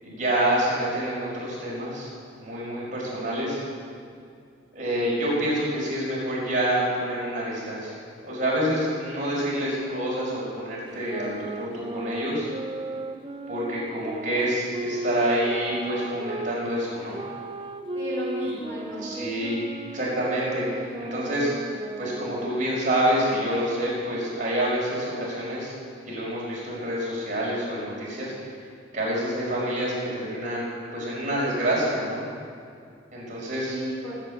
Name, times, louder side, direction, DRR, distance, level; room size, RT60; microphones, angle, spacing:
voice 1, 0.0-2.1 2.4-3.6 4.7-7.9 8.2-12.5 13.5-17.2 18.4-18.6 19.0-19.6 19.9-21.5 22.0-25.7 26.1-28.3 28.9-32.2 33.1-33.8, right 1 dB, 40° right, -5 dB, 5.4 m, -27 dB
sound 1, 10.9-16.6 17.1-22.7, right 2 dB, 25° right, 0.6 m, -35 dB
voice 2, 17.9-19.5 33.6-34.2, equal, 15° left, -7 dB, 5.3 m, -34 dB
18.0 x 8.5 x 8.7 m, 2.3 s
head